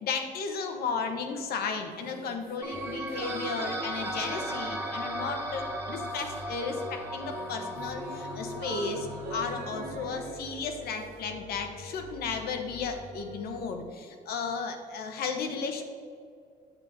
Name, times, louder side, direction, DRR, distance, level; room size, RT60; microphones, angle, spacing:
voice 1, 0.0-15.8, left 5 dB, 65° left, 5 dB, 1.1 m, -34 dB
sound 1, 1.9-6.7 6.9-11.3 11.5-11.6, right 6 dB, 60° right, 0.7 m, -46 dB
sound 2, 2.6-10.3, right 1 dB, 15° right, 1.6 m, -37 dB
sound 3, 2.7-13.6, left 2 dB, 25° left, 1.5 m, -47 dB
8.4 x 6.9 x 4.1 m, 2.3 s
cardioid pair, 110°, 17 cm